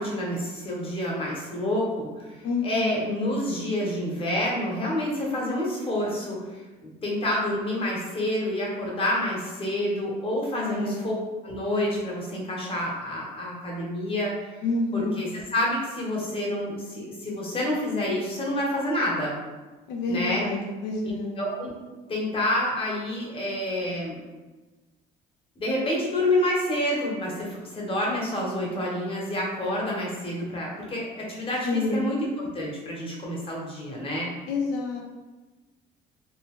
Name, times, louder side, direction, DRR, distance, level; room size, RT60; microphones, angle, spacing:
voice 1, 0.0-11.2 11.4-14.6 14.9-19.3 20.1-20.5 21.4-21.7 22.1-24.2 25.6-34.3, left 1 dB, 35° left, -3 dB, 1.0 m, -28 dB
voice 2, 2.4-3.0 10.6-11.1 14.6-15.2 19.9-21.4 31.6-32.1 34.5-35.0, left 3 dB, 90° left, 0 dB, 0.4 m, -28 dB
2.5 x 2.3 x 3.6 m, 1.2 s
cardioid pair, 110°, 17 cm